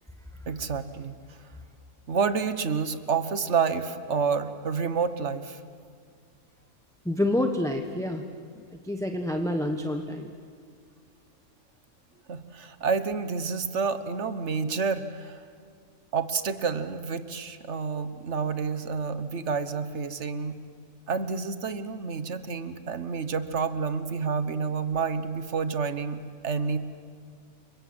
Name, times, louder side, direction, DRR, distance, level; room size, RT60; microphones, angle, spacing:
voice 1, 0.5-1.1 2.1-5.6 12.3-15.4 16.1-20.6 21.1-26.8, right 5 dB, 55° right, 11 dB, 1.5 m, -29 dB
voice 2, 7.0-8.2 8.8-10.3, left 1 dB, ahead, 4 dB, 1.1 m, -27 dB
29.5 x 24.5 x 7.8 m, 2.1 s
omnidirectional pair, 1.5 m